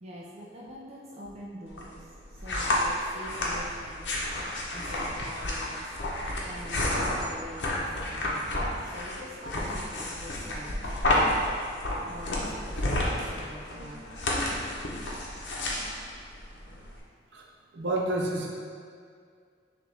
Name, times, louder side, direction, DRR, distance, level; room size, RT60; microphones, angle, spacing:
voice 1, 0.0-4.1 4.7-5.9 6.5-11.4 12.0-14.1, equal, 35° right, -5 dB, 0.5 m, -44 dB
sound 1, 1.7-17.0, left 1 dB, 80° left, 0.8 m, -31 dB
voice 2, 17.7-18.5, right 1 dB, 75° right, -1 dB, 0.7 m, -29 dB
6.2 x 2.5 x 3.3 m, 2.1 s
head